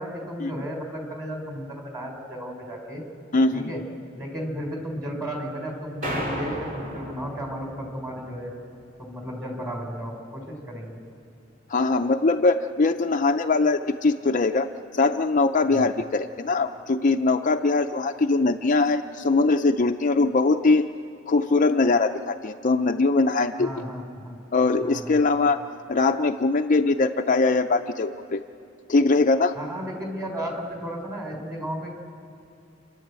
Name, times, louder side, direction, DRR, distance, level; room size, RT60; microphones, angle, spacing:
voice 1, 0.0-3.0 3.5-3.8 4.2-8.5 9.0-11.0 15.7-15.9 23.6-24.4 24.8-25.2 29.5-31.9, equal, 15° right, 1 dB, 4.2 m, -34 dB
voice 2, 3.3-3.7 11.7-20.9 21.3-23.7 24.5-25.6 25.9-28.4 28.9-29.5, left 3 dB, 40° left, 5 dB, 0.6 m, -22 dB
sound 1, 6.0-8.4, equal, 45° right, 3.5 m, -34 dB
30.0 x 11.0 x 8.2 m, 2.6 s
head